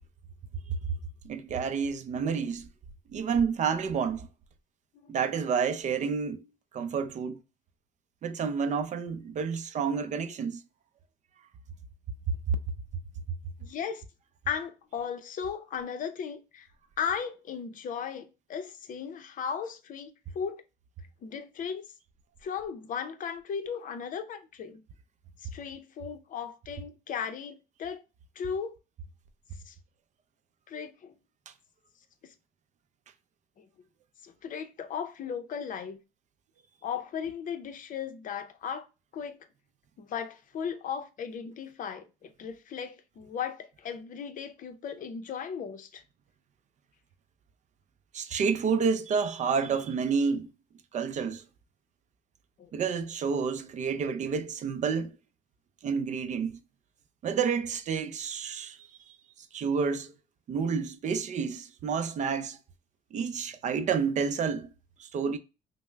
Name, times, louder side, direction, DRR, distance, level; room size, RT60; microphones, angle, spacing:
voice 1, 0.7-1.0 1.2-2.7 3.1-4.3 5.1-6.4 6.7-7.4 8.2-10.6 12.3-12.6 48.1-50.5 50.9-51.4 52.7-55.1 55.8-56.6 57.2-59.2 59.5-60.1 60.5-62.6 63.1-64.7 65.0-65.4, right 6 dB, 45° right, 0.5 m, -29 dB
voice 2, 13.6-14.0 14.5-16.7 17.0-20.6 21.2-21.9 22.4-24.8 25.4-28.0 28.4-28.7 29.7-29.8 30.7-31.1 33.6-33.7 34.2-36.0 36.8-38.9 39.1-39.4 40.0-46.0 52.6-52.7, left 7 dB, 50° left, 0.6 m, -36 dB
5.3 x 2.0 x 2.2 m
cardioid pair, 110°, 17 cm